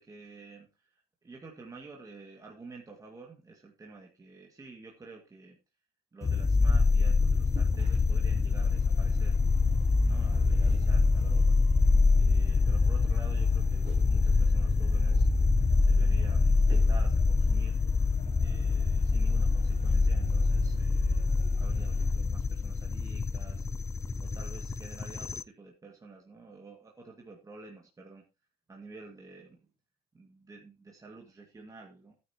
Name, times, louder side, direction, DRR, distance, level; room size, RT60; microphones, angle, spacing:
voice 1, 0.0-5.6 6.1-9.4 10.0-11.6 12.2-15.3 15.8-17.8 18.4-23.7 24.2-28.2 28.7-29.7 30.1-32.1, right 3 dB, 20° right, 0 dB, 2.1 m, -50 dB
sound 1, 6.2-25.4, left 3 dB, 20° left, 0.5 m, -25 dB
sound 2, 7.2-22.1, right 4 dB, 45° right, 3.7 m, -57 dB
sound 3, 8.5-22.1, left 4 dB, 55° left, 4.9 m, -56 dB
14.0 x 9.3 x 2.9 m, 0.27 s
cardioid pair, 120°, 16 cm